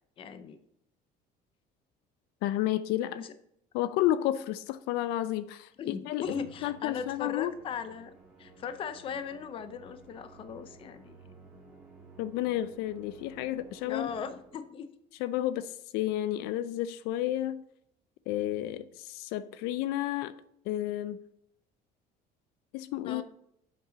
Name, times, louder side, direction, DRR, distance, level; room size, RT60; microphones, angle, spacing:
voice 1, 0.2-0.6 3.1-3.3 5.8-8.1 8.4-11.2 13.9-14.9 23.1-23.2, left 6 dB, 35° left, 0.6 m, -38 dB
voice 2, 2.4-3.2 3.7-6.2 6.6-7.5 12.2-14.1 15.2-17.6 18.3-20.3 20.7-21.2 22.7-23.2, left 13 dB, 80° left, 0.4 m, -31 dB
Musical instrument, 6.2-14.8, right 3 dB, 10° right, 2.3 m, -54 dB
7.7 x 5.3 x 5.1 m
cardioid pair, 165°, 16 cm